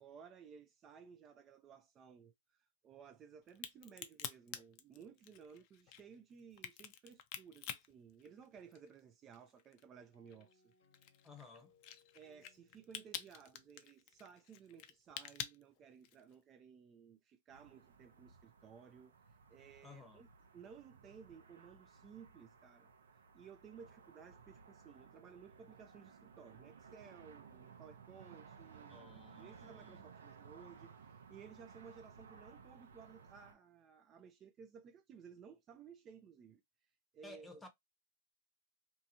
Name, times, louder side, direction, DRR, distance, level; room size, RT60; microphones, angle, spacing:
voice 1, 0.0-10.7 12.1-19.1 19.5-20.3 20.5-22.9 23.3-29.1 29.4-37.6, right 7 dB, 30° right, 0.3 m, -58 dB
Crack, 3.5-9.0 9.3-16.3, left 10 dB, 45° left, 0.4 m, -48 dB
sound 1, 10.1-14.8, left 4 dB, 80° left, 1.0 m, -74 dB
voice 2, 11.2-11.7 19.8-20.2 28.9-30.0 37.2-37.7, left 3 dB, 10° left, 0.7 m, -55 dB
sound 2, 17.5-33.5, right 6 dB, 80° right, 0.7 m, -59 dB
2.7 x 2.4 x 2.6 m
hypercardioid pair, 120°, 0 cm